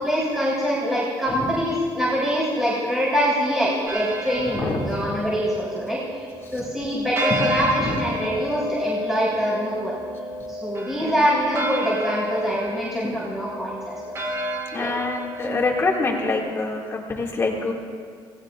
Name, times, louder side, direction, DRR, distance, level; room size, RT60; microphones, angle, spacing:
voice 1, 0.0-6.3 6.5-9.9 10.5-14.1 14.8-14.9, equal, 5° right, -8 dB, 3.7 m, -24 dB
sound 1, 3.9-16.4, equal, 30° right, 1.9 m, -31 dB
voice 2, 4.5-4.9 6.4-6.5 7.3-7.5 7.8-8.0 10.9-11.1 14.7-17.7, left 3 dB, 30° left, -1 dB, 2.2 m, -25 dB
27.5 x 18.0 x 2.5 m, 2.1 s
cardioid pair, 160°, 9 cm